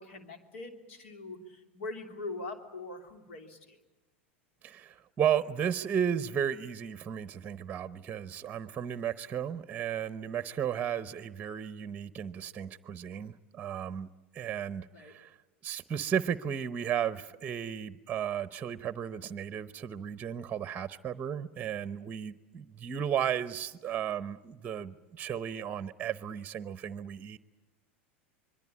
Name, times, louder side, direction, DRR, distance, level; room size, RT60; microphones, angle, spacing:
voice 1, 0.0-3.8 14.9-15.1, left 2 dB, 75° left, 5 dB, 3.0 m, -42 dB
voice 2, 4.6-14.1 14.3-15.3 15.6-27.4, right 8 dB, 25° right, 14 dB, 0.9 m, -34 dB
26.0 x 22.5 x 8.6 m, 1.1 s
hypercardioid pair, 100°, 7 cm